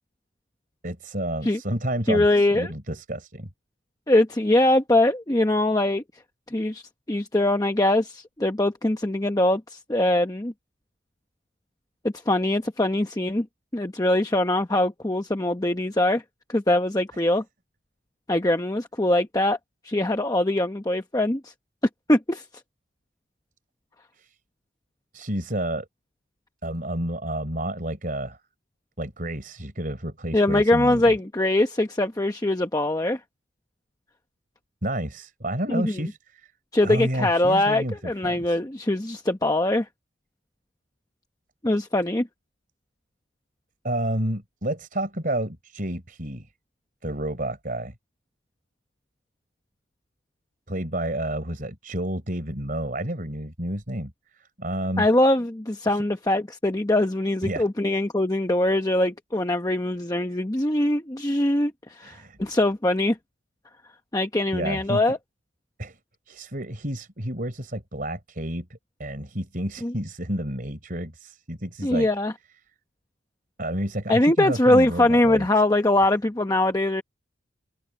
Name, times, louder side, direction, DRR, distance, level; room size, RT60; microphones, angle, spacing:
voice 1, 0.8-3.5 17.1-17.2 24.1-24.4 25.1-25.9 26.6-28.4 29.0-31.1 34.8-36.5 36.8-38.6 43.8-46.5 47.0-47.9 50.7-55.1 55.9-56.0 57.4-57.7 62.0-62.4 64.5-65.2 65.8-66.0 66.3-72.1 73.6-75.5, right 1 dB, 45° right, 4.2 m, -30 dB
voice 2, 2.1-2.7 4.1-6.0 6.5-6.8 7.1-10.5 12.3-13.5 13.7-16.2 16.5-17.4 18.3-19.6 19.8-21.5 22.1-22.4 30.3-33.2 35.7-36.0 36.7-39.9 41.6-42.3 55.0-63.2 64.1-65.2 69.8-69.9 71.8-72.3 74.1-77.0, left 1 dB, 20° left, 0.9 m, -22 dB
open air
head